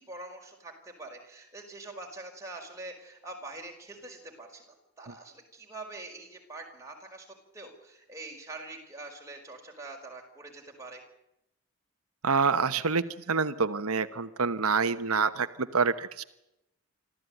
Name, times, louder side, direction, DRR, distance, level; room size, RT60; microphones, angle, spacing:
voice 1, 0.0-7.3 7.5-11.0, right 2 dB, 15° right, 1 dB, 5.2 m, -44 dB
voice 2, 12.2-16.2, right 5 dB, 85° right, 10 dB, 1.1 m, -27 dB
25.5 x 15.0 x 9.3 m, 0.86 s
head